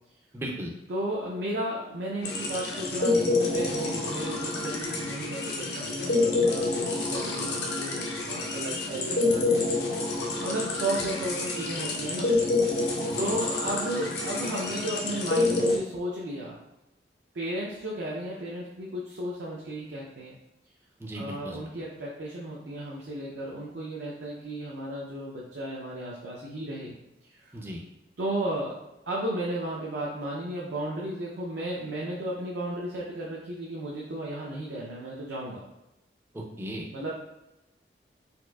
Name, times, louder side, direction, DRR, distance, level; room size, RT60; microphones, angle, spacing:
voice 1, 0.3-0.7 13.1-13.3 21.0-21.6 27.5-27.8 36.3-36.9, equal, 15° right, -1 dB, 0.4 m, -36 dB
voice 2, 0.9-10.1 10.4-12.3 12.6-12.7 13.2-16.6 17.3-20.4 21.1-27.0 27.3-27.4 28.2-28.8 29.1-35.6 36.9-37.1, right 1 dB, 70° right, -4 dB, 0.5 m, -34 dB
sound 1, 2.2-15.8, left 2 dB, 65° left, 0.6 m, -28 dB
4.2 x 2.4 x 2.3 m, 0.94 s
head